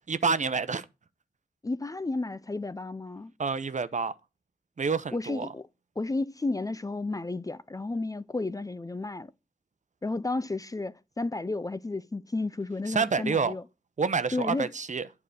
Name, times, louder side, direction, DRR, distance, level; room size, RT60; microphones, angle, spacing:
voice 1, 0.1-0.8 3.4-4.1 4.8-5.5 12.9-13.5 14.0-15.0, right 5 dB, 50° right, 0.7 m, -28 dB
voice 2, 1.6-3.3 5.1-5.6 6.0-9.3 10.0-13.6 14.3-14.7, left 2 dB, 25° left, 0.5 m, -32 dB
9.0 x 4.8 x 6.8 m
cardioid pair, 50°, 15 cm